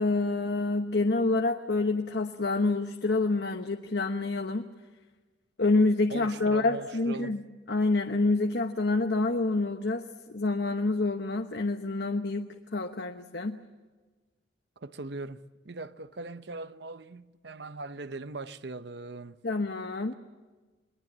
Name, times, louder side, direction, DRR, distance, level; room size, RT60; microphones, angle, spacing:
voice 1, 0.0-4.7 5.6-13.6 19.4-20.2, left 3 dB, 60° left, 1.0 m, -27 dB
voice 2, 6.1-7.4 14.8-19.4, right 3 dB, 60° right, 0.8 m, -40 dB
28.5 x 21.5 x 7.4 m
head